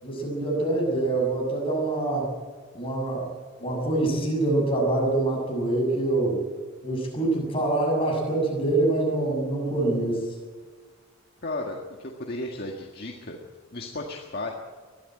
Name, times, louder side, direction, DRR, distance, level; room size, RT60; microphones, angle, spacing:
voice 1, 0.0-2.3 2.7-3.3 3.6-6.4 6.8-10.3, right 2 dB, 25° left, -1 dB, 7.1 m, -25 dB
voice 2, 11.4-13.4 13.7-14.5, left 2 dB, 45° left, 1 dB, 1.8 m, -34 dB
21.5 x 14.0 x 9.1 m, 1.5 s
head